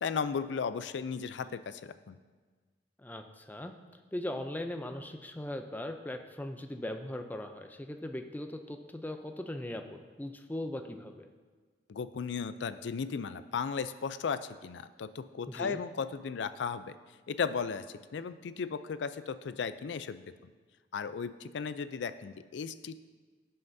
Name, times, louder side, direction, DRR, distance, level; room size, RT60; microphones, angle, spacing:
voice 1, 0.0-2.2 11.9-16.9 17.3-20.3 20.9-23.0, left 6 dB, 80° left, 13 dB, 0.4 m, -35 dB
voice 2, 3.0-3.7 4.1-11.3 15.5-15.8, left 1 dB, 10° left, 6 dB, 0.5 m, -39 dB
16.5 x 5.7 x 2.7 m, 1.4 s
head